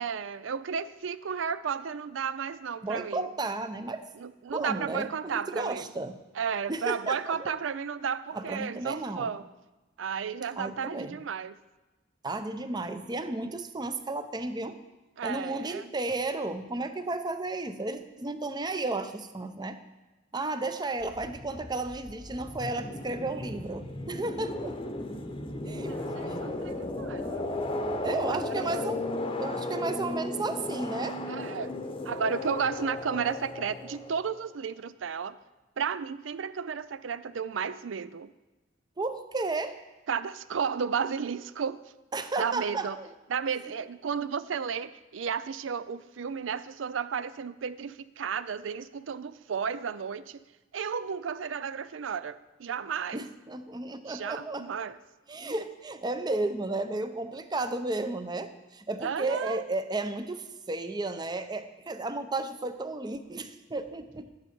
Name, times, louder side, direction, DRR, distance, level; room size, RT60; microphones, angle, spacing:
voice 1, 0.0-3.3 4.2-5.9 6.4-9.5 10.0-11.6 15.2-15.9 25.9-27.5 28.3-28.9 31.3-31.7 32.0-35.4 35.8-38.3 40.1-41.9 42.4-43.0 43.3-50.4 50.7-53.3 54.1-55.0 59.0-59.6, right 6 dB, 90° right, 16 dB, 0.5 m, -33 dB
voice 2, 2.8-4.0 4.5-6.2 6.7-7.5 8.3-9.3 10.6-11.2 12.2-14.8 15.2-19.8 20.3-24.8 25.7-26.0 26.3-26.6 28.0-29.0 29.4-31.2 39.0-39.8 42.1-43.1 53.1-54.7 55.3-64.3, right 2 dB, 20° right, 10 dB, 0.6 m, -33 dB
sound 1, 21.0-34.4, left 2 dB, 30° left, 0.8 m, -35 dB
12.0 x 9.8 x 4.5 m, 1.1 s
head